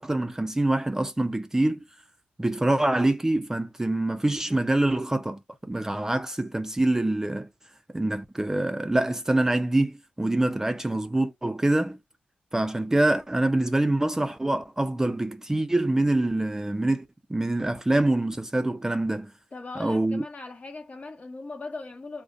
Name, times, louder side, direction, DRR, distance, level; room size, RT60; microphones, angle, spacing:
voice 1, 0.0-1.9 2.4-5.4 5.7-7.5 7.9-12.0 12.5-19.3 19.8-20.2, right 1 dB, 15° right, 0.4 m, -25 dB
voice 2, 19.5-22.2, left 3 dB, 45° left, 0.8 m, -39 dB
2.5 x 2.1 x 2.5 m
supercardioid pair, 45°, 3 cm